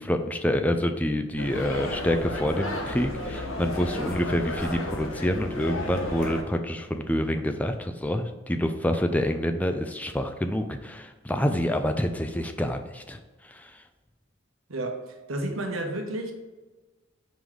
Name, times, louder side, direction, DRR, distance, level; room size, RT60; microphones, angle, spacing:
voice 1, 0.0-13.2 13.4-13.7, left 1 dB, 5° left, 6 dB, 0.4 m, -27 dB
sound 1, 1.4-6.4, left 1 dB, 80° left, 1.1 m, -33 dB
voice 2, 14.7-16.3, right 1 dB, 80° right, 3 dB, 1.1 m, -31 dB
5.2 x 3.9 x 4.7 m, 1.2 s
head